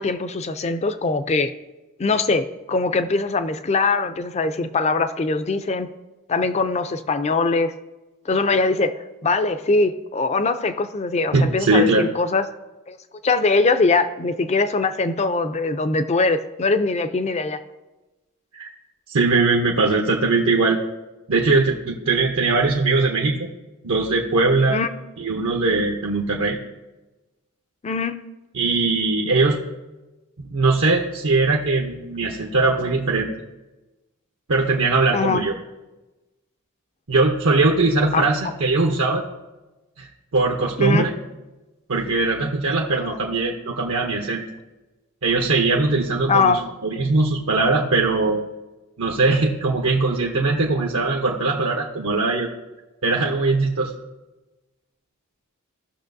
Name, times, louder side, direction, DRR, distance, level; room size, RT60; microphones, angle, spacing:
voice 1, 0.0-1.5 2.0-5.9 6.3-7.8 8.3-12.4 12.9-13.0 13.2-17.6 24.7-24.9 27.8-28.3 35.1-35.4 38.1-38.2 40.8-41.1 43.0-43.2 46.3-46.7, left 3 dB, 30° left, 11 dB, 0.4 m, -22 dB
voice 2, 11.3-12.0 18.5-18.7 19.1-20.8 21.3-23.5 23.8-24.8 25.2-26.6 28.5-29.6 30.4-33.3 34.5-35.5 37.1-39.2 40.0-40.1 40.3-41.1 41.9-44.4 45.2-48.4 49.0-52.5 53.0-53.9, right 3 dB, 70° right, 0 dB, 0.8 m, -20 dB
16.0 x 6.1 x 2.6 m, 1.1 s
head